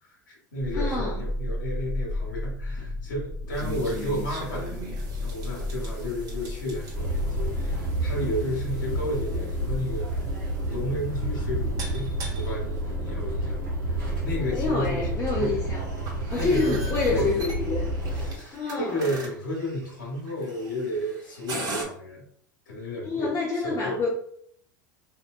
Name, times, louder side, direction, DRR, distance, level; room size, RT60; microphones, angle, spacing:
voice 1, 0.0-4.7 5.2-15.7 16.3-17.8 18.1-22.2 22.7-24.0, left 1 dB, 85° left, -3 dB, 1.0 m, -32 dB
sound 1, 0.6-18.3, left 1 dB, 5° right, 0.7 m, -35 dB
voice 2, 0.7-1.2 14.5-15.8 16.3-17.9 18.5-19.0 23.0-24.1, left 3 dB, 30° left, -3 dB, 0.7 m, -27 dB
sound 2, 3.5-21.8, right 2 dB, 40° right, 1.1 m, -41 dB
sound 3, 6.9-18.3, right 1 dB, 80° right, 1.5 m, -30 dB
3.3 x 2.7 x 2.3 m, 0.65 s
hypercardioid pair, 85°, 10 cm